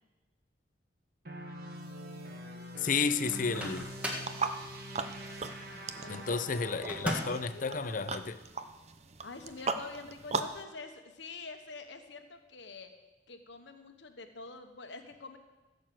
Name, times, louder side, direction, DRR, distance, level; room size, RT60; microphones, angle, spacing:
sound 1, 1.2-7.4, equal, 55° right, 1.5 m, -44 dB
voice 1, 2.8-3.9 6.1-8.4, left 5 dB, 45° left, 0.6 m, -32 dB
Microwave oven, 3.3-4.4 6.9-7.5, equal, 5° right, 1.6 m, -36 dB
sound 2, 4.2-10.6, right 4 dB, 35° right, 0.7 m, -39 dB
voice 2, 5.7-6.3 7.1-8.1 9.2-12.9 13.3-15.4, left 3 dB, 75° left, 1.2 m, -47 dB
15.5 x 6.6 x 7.6 m
head